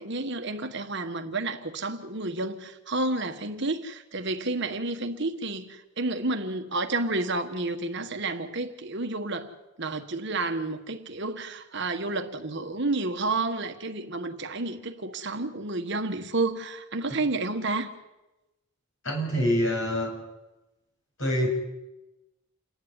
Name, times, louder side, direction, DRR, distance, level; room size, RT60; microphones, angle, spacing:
voice 1, 0.0-17.9, right 2 dB, 50° right, 1.4 m, -30 dB
voice 2, 19.0-20.1 21.2-21.5, equal, 60° left, 7.9 m, -25 dB
28.5 x 11.0 x 9.7 m
head